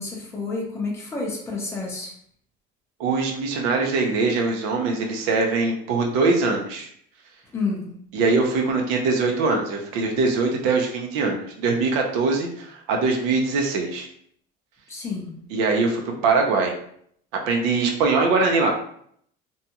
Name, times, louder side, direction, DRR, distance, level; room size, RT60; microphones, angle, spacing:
voice 1, 0.0-2.1 7.5-8.0 14.9-15.4, left 3 dB, 15° left, -2 dB, 0.5 m, -29 dB
voice 2, 3.0-6.9 8.1-14.1 15.5-16.7 17.5-18.7, right 3 dB, 75° right, 1 dB, 0.6 m, -22 dB
2.7 x 2.3 x 2.8 m, 0.66 s
cardioid pair, 175°, 21 cm